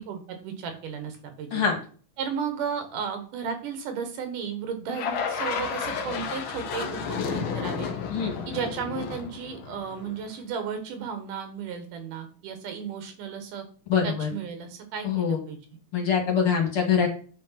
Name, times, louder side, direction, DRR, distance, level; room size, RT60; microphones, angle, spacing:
voice 1, 0.1-1.6 2.2-7.9 8.5-13.6 14.0-15.6, right 6 dB, 85° right, 7 dB, 3.1 m, -34 dB
sound 1, 4.9-10.3, left 6 dB, 65° left, 1.3 m, -32 dB
voice 2, 13.9-14.3 15.0-15.4 15.9-17.1, left 7 dB, 45° left, 2 dB, 2.5 m, -24 dB
8.7 x 5.3 x 5.8 m, 0.41 s
omnidirectional pair, 3.6 m